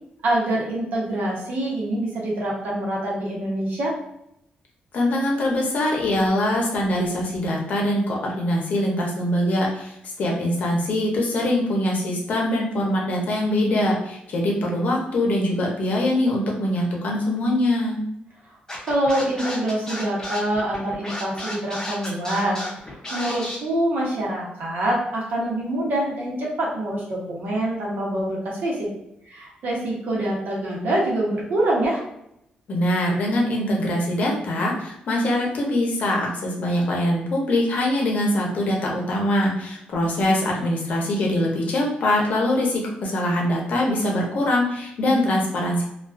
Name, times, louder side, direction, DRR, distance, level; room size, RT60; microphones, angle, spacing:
voice 1, 0.2-3.9 18.8-22.6 23.1-28.9 29.3-32.0, right 1 dB, 70° right, -4 dB, 0.9 m, -25 dB
voice 2, 4.9-18.0 32.7-45.8, left 1 dB, 60° left, -1 dB, 0.7 m, -23 dB
Scratching (performance technique), 18.7-23.6, left 1 dB, 20° left, 0.6 m, -33 dB
2.4 x 2.3 x 2.4 m, 0.81 s
wide cardioid pair, 145°, 3 cm